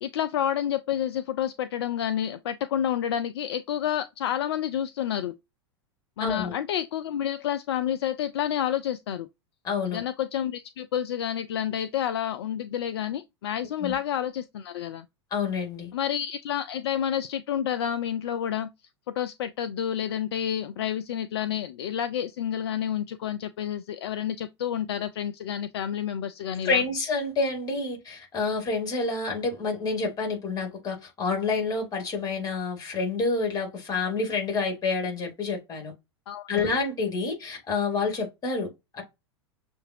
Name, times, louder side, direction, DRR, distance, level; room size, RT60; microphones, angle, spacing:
voice 1, 0.0-5.4 6.2-9.3 9.8-15.0 15.9-18.7 19.2-26.8 36.3-36.7, left 10 dB, 60° left, 0.4 m, -29 dB
voice 2, 6.2-6.6 9.6-10.0 13.8-14.0 15.3-15.9 26.6-35.9 36.5-39.0, left 4 dB, 25° left, 2.6 m, -28 dB
6.6 x 2.6 x 2.8 m
figure-of-eight pair, 90°, 15 cm